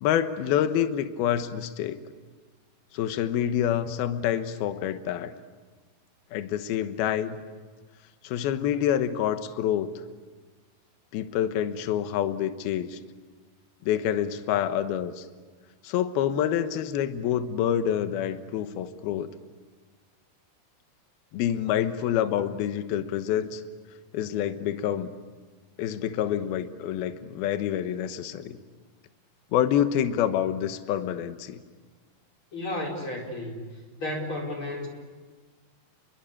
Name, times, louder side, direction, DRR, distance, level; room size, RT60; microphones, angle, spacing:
voice 1, 0.0-2.0 2.9-5.3 6.3-7.4 8.2-9.9 11.1-13.0 13.8-15.3 15.8-19.3 21.3-23.6 24.1-25.1 25.8-28.6 29.5-31.6, left 10 dB, 70° left, 10 dB, 2.9 m, -27 dB
voice 2, 32.5-34.9, left 1 dB, 30° left, 0 dB, 5.0 m, -33 dB
29.5 x 23.0 x 8.7 m, 1.4 s
omnidirectional pair, 4.9 m